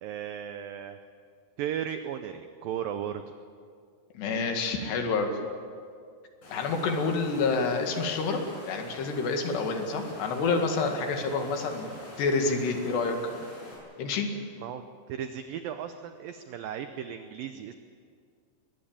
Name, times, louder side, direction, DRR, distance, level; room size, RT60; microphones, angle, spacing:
voice 1, 0.0-1.0 1.6-3.2 14.6-14.8 15.1-17.7, right 9 dB, 90° right, 8 dB, 2.0 m, -35 dB
voice 2, 4.2-5.3 6.5-8.4 8.7-13.2 14.0-14.3, left 4 dB, 70° left, 4 dB, 4.1 m, -28 dB
Water, 6.4-13.7, left 1 dB, 50° left, 8.2 m, -45 dB
22.0 x 19.0 x 8.9 m, 2.2 s
omnidirectional pair, 5.1 m